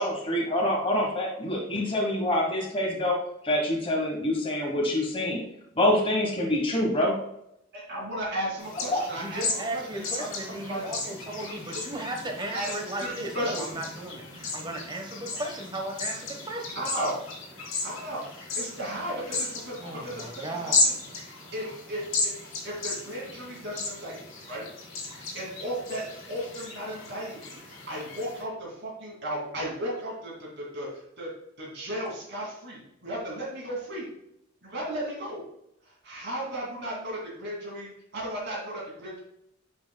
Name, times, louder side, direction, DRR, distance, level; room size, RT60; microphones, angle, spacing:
voice 1, 0.0-3.2 3.4-5.4 5.8-7.2 8.9-9.0, left 1 dB, 25° left, -1 dB, 1.3 m, -26 dB
voice 2, 7.7-9.4 9.7-11.1 12.5-12.7 13.0-13.7 16.7-17.2 17.8-20.9 21.2-22.3 22.6-24.2 24.4-24.6 25.2-31.3 31.6-34.1 34.6-35.4 36.0-39.2, right 1 dB, 60° right, -4 dB, 2.6 m, -35 dB
sound 1, 8.6-28.4, left 3 dB, 75° left, 2.6 m, -34 dB
voice 3, 9.2-16.8 19.8-20.8, right 1 dB, 25° right, 2 dB, 1.2 m, -36 dB
9.2 x 6.0 x 2.3 m, 0.78 s
head